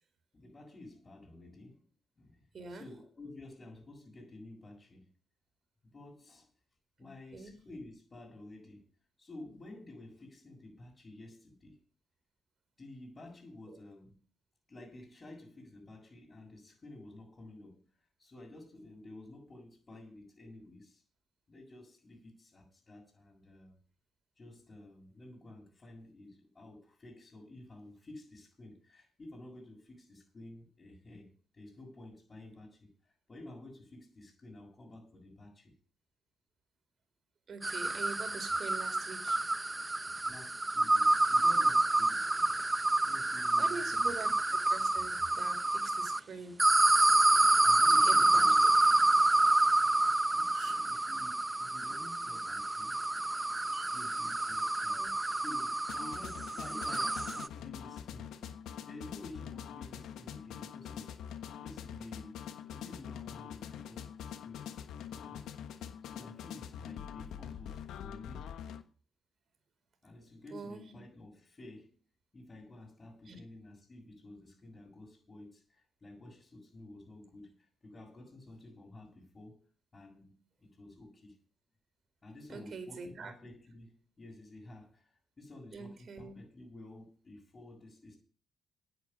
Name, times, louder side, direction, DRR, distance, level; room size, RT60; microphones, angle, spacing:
voice 1, 0.3-1.9 2.2-2.4 2.7-5.1 5.9-6.5 7.0-8.8 9.2-11.8 12.8-14.2 14.7-17.9 18.2-21.0 21.5-23.8 24.4-35.7 40.3-44.0 47.6-48.6 50.2-53.0 53.9-55.0 55.3-58.3 58.9-61.1 61.6-64.6 65.1-65.5 66.0-68.5 70.0-72.0 72.3-79.6 79.9-81.3 82.2-88.2, left 2 dB, 30° left, 6.4 m, -52 dB
voice 2, 2.5-2.9 7.0-7.6 13.7-13.8 37.5-39.4 43.6-46.7 47.9-48.7 54.9-55.1 70.5-70.9 73.3-73.4 82.5-83.3 85.7-86.4, right 4 dB, 50° right, 4.4 m, -44 dB
sound 1, 37.6-46.2 46.6-57.5, right 2 dB, 15° right, 0.6 m, -28 dB
sound 2, 50.0-50.1 50.3-51.0 52.6-52.9 53.7-53.9 54.9-55.2, right 6 dB, 75° right, 4.2 m, -50 dB
sound 3, 55.9-68.8, left 9 dB, 80° left, 1.2 m, -44 dB
10.5 x 9.6 x 7.0 m
cardioid pair, 90°, 0 cm